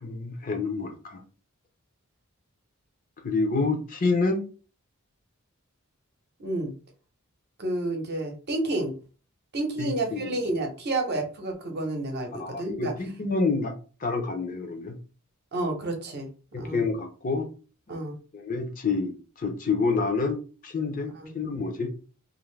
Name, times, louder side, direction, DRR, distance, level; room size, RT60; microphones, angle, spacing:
voice 1, 0.0-1.2 3.2-4.4 9.8-10.3 12.4-13.7 14.0-15.0 16.5-17.5 18.3-20.4 20.6-21.9, left 3 dB, 40° left, 4 dB, 0.6 m, -28 dB
voice 2, 6.4-6.7 7.6-8.9 9.5-12.9 15.5-16.3 16.6-16.8 17.9-18.2 21.1-21.3, right 2 dB, 50° right, 3 dB, 0.8 m, -30 dB
2.6 x 2.5 x 3.2 m, 0.36 s
head